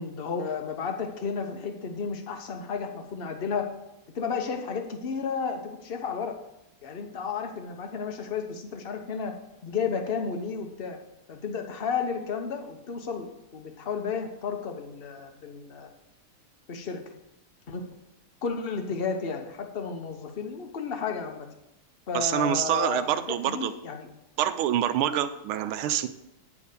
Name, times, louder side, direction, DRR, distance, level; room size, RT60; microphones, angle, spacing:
voice 1, 0.0-3.7 4.1-6.4 6.8-9.3 9.6-11.0 11.3-13.3 13.5-15.9 16.7-17.0 17.7-17.8 18.4-21.5 22.1-24.1, left 6 dB, 45° left, 4 dB, 0.7 m, -32 dB
voice 2, 22.1-23.7 24.4-26.1, right 10 dB, 85° right, 11 dB, 1.4 m, -26 dB
9.9 x 4.9 x 6.7 m, 0.87 s
omnidirectional pair, 2.3 m